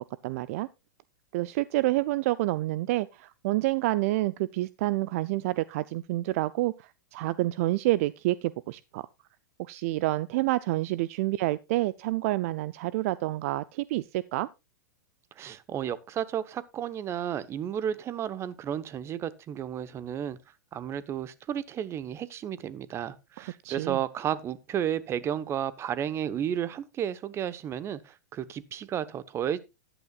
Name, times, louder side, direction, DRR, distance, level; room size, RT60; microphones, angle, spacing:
voice 1, 0.2-0.7 1.3-9.1 9.6-14.5 23.4-24.0, right 18 dB, 55° right, 0.5 m, -28 dB
voice 2, 15.4-20.4 20.7-29.6, right 9 dB, 30° right, 1.0 m, -32 dB
14.5 x 11.0 x 2.4 m
hypercardioid pair, 105°, 9 cm